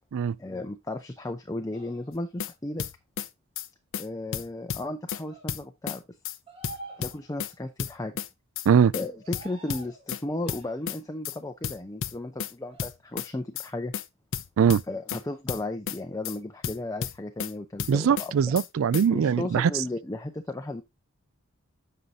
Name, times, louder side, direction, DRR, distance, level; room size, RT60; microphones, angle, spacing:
voice 1, 0.4-2.9 4.0-6.0 7.0-8.1 8.9-13.9 14.9-18.3 19.1-20.8, left 2 dB, 15° left, 0.6 m, -35 dB
sound 1, 1.7-2.3 5.2-5.5 6.5-7.6 9.1-10.1 10.5-11.0 12.6-12.9, right 3 dB, 25° right, 1.7 m, -47 dB
sound 2, 2.1-2.5 2.8-3.3 3.6-3.7 3.9-4.1 4.3-5.2 5.5-6.0 6.2-6.4 6.6-7.5 7.8-8.3 8.6-8.7 8.9-9.1 9.3-10.2 10.5-11.0 11.2-11.4 11.6-12.5 12.8-13.3 13.6-13.7 13.9-14.1 14.3-15.2 15.5-16.0 16.2-16.4 16.6-17.5 17.8-18.3 18.6-18.7 18.9-19.1, left 8 dB, 65° left, 0.6 m, -33 dB
voice 2, 17.9-19.7, right 7 dB, 65° right, 0.3 m, -21 dB
7.9 x 5.6 x 3.7 m
head